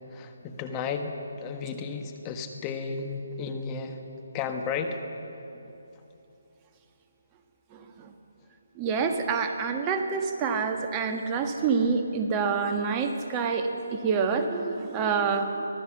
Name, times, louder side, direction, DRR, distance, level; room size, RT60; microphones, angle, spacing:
voice 1, 0.1-4.0 4.3-5.0, left 5 dB, 20° left, 5 dB, 1.4 m, -33 dB
voice 2, 7.7-8.1 8.8-15.7, right 5 dB, 20° right, 5 dB, 1.5 m, -27 dB
24.5 x 17.5 x 7.2 m, 2.9 s
figure-of-eight pair, 150°, 0 cm